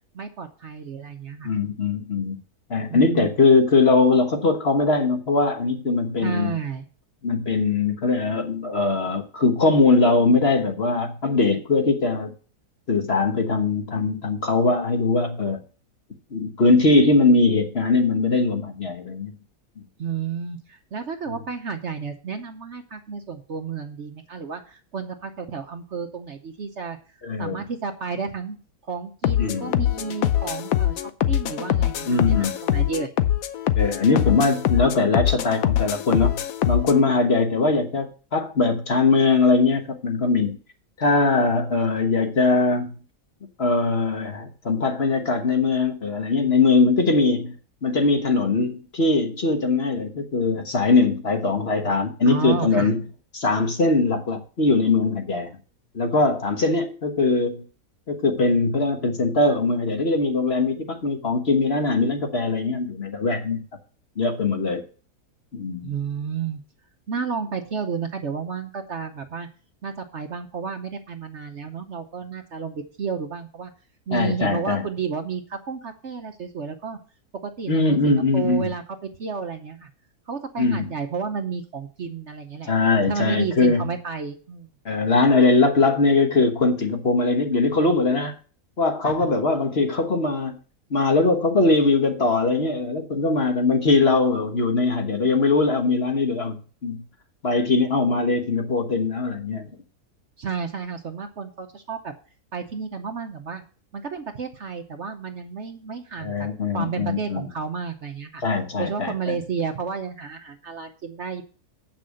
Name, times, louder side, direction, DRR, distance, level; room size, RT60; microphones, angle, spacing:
voice 1, 0.1-1.5 2.9-3.3 6.2-6.8 20.0-27.0 27.4-28.6 28.9-31.0 31.3-33.1 52.2-52.9 65.8-66.6 67.1-69.5 69.8-73.7 74.1-77.0 77.4-79.9 80.3-82.7 83.1-84.7 89.0-89.1 100.4-102.1 102.5-103.6 103.9-106.5 106.7-108.4 108.8-111.4, right 6 dB, 50° right, 7 dB, 1.1 m, -31 dB
voice 2, 1.4-2.4 2.7-6.5 7.2-12.3 12.9-15.6 16.3-19.3 27.2-27.6 29.4-29.7 32.1-32.5 33.8-36.4 36.7-40.6 41.0-42.9 43.6-47.5 47.8-53.0 53.3-55.5 55.9-57.6 58.1-63.6 64.2-64.8 65.5-65.9 74.1-74.8 77.7-78.7 80.6-80.9 82.7-83.9 84.8-88.3 88.8-90.6 90.9-96.6 96.8-97.0 97.4-99.7 106.2-107.5 108.4-109.4, left 3 dB, 40° left, 5 dB, 1.4 m, -21 dB
sound 1, 29.2-37.0, left 11 dB, 65° left, 1.1 m, -23 dB
8.3 x 6.1 x 6.4 m, 0.38 s
omnidirectional pair, 1.7 m